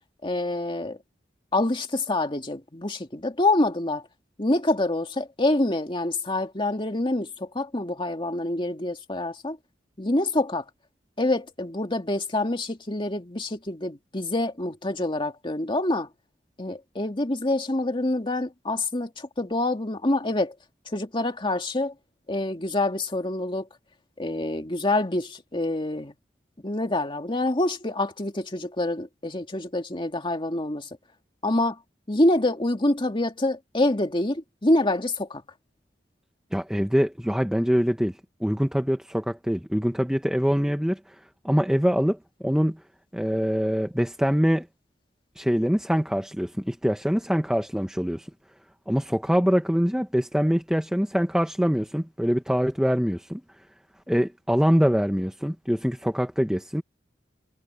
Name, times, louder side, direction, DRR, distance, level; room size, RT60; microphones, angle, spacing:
voice 1, 0.2-1.0 1.5-4.1 4.4-9.6 10.0-10.7 11.2-16.1 16.6-20.5 20.9-21.9 22.3-23.7 24.2-26.1 26.6-30.9 31.4-31.8 32.1-35.4, left 2 dB, 30° left, 2.3 m, -26 dB
voice 2, 36.5-38.1 38.4-41.0 41.4-42.2 42.4-42.8 43.1-44.7 45.4-48.3 48.9-53.4 54.1-56.8, equal, 5° right, 1.1 m, -24 dB
head